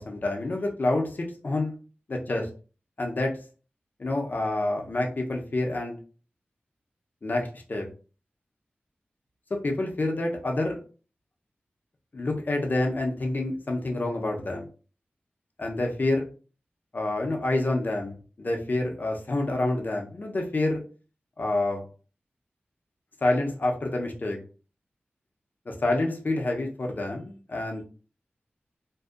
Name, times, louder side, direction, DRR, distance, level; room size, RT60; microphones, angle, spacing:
voice 1, 0.0-1.7 2.1-2.5 3.0-3.3 4.0-5.9 7.2-7.9 9.5-10.8 12.1-14.6 15.6-16.3 16.9-20.8 21.4-21.8 23.2-24.4 25.7-27.8, left 2 dB, 50° left, 1 dB, 0.6 m, -28 dB
2.6 x 2.3 x 2.4 m, 0.37 s
wide cardioid pair, 65°, 4 cm